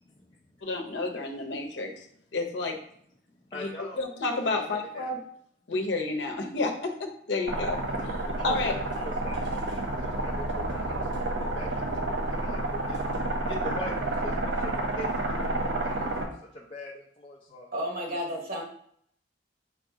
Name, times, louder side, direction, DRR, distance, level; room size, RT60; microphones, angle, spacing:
voice 1, 0.6-1.9 2.3-2.8 3.5-5.2 5.7-7.8 8.4-8.7, left 3 dB, 70° left, 2 dB, 0.8 m, -30 dB
voice 2, 3.5-4.0 4.5-5.1 7.9-8.5 9.0-13.0 13.4-15.1 15.5-17.7, left 1 dB, 25° left, -3 dB, 0.5 m, -43 dB
sound 1, 7.5-16.3, right 2 dB, 70° right, 0.7 m, -30 dB
voice 3, 17.7-18.6, equal, 50° right, 0 dB, 1.1 m, -32 dB
3.8 x 2.7 x 4.7 m, 0.67 s
head